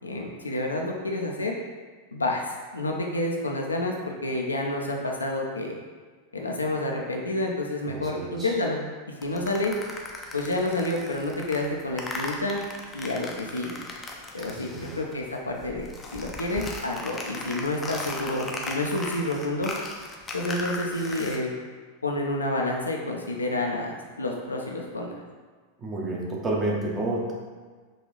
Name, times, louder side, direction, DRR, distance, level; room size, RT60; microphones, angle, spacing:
voice 1, 0.0-1.5 2.1-2.4 2.7-5.8 6.3-8.8 9.2-9.7 10.3-12.6 12.9-13.8 14.3-19.7 20.3-21.5 22.0-25.1, left 2 dB, 80° left, 0 dB, 0.5 m, -29 dB
voice 2, 7.9-8.5 14.6-15.0 25.8-27.3, right 2 dB, 20° right, -3 dB, 0.8 m, -30 dB
sound 1, 9.2-15.2 15.5-21.4, left 2 dB, 20° left, 0.5 m, -37 dB
3.8 x 2.5 x 3.1 m, 1.5 s
figure-of-eight pair, 90°, 0 cm